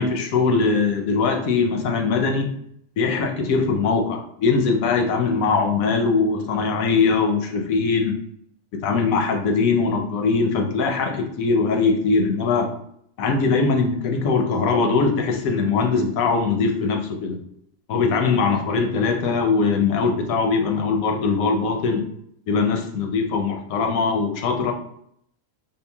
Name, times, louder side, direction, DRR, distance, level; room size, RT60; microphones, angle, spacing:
voice 1, 0.0-2.5 3.0-8.1 8.7-12.7 13.2-17.4 17.9-22.1 22.5-24.7, left 4 dB, 90° left, 4 dB, 1.1 m, -21 dB
3.8 x 2.2 x 3.3 m, 0.69 s
omnidirectional pair, 1.4 m